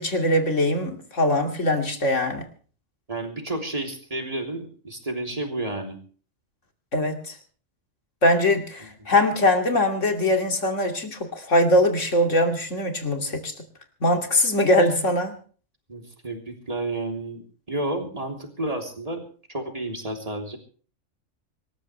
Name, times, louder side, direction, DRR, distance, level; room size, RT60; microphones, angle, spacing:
voice 1, 0.0-2.4 6.9-7.3 8.2-13.5 14.0-15.3, left 1 dB, 70° left, 4 dB, 3.0 m, -22 dB
voice 2, 3.1-6.0 15.9-19.2 19.5-20.6, right 2 dB, 30° right, 2 dB, 3.4 m, -31 dB
25.5 x 13.5 x 3.3 m, 0.42 s
omnidirectional pair, 1.3 m